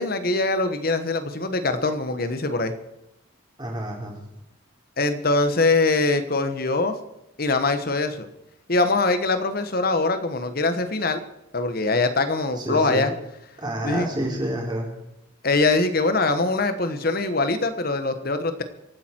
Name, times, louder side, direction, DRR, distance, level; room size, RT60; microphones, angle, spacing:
voice 1, 0.0-2.7 5.0-7.0 7.4-8.3 8.7-11.2 11.5-13.1 13.8-14.1 15.4-18.6, left 3 dB, 50° left, 9 dB, 1.3 m, -23 dB
voice 2, 3.6-4.1 12.6-13.0 13.6-14.9, right 1 dB, 20° right, -1 dB, 3.7 m, -28 dB
25.0 x 9.1 x 4.6 m, 0.86 s
head